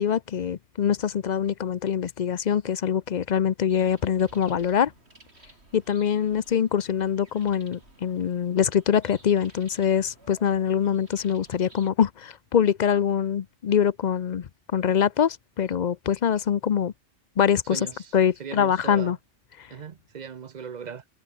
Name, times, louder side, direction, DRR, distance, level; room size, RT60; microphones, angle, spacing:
voice 1, 0.0-4.9 5.7-16.9 17.4-17.9 18.1-19.2 19.6-19.7, left 8 dB, 50° left, 0.6 m, -24 dB
sound 1, 3.7-11.9, right 2 dB, 65° right, 5.2 m, -54 dB
voice 2, 18.4-19.1 19.7-21.0, right 7 dB, 45° right, 0.7 m, -38 dB
omnidirectional pair, 1.2 m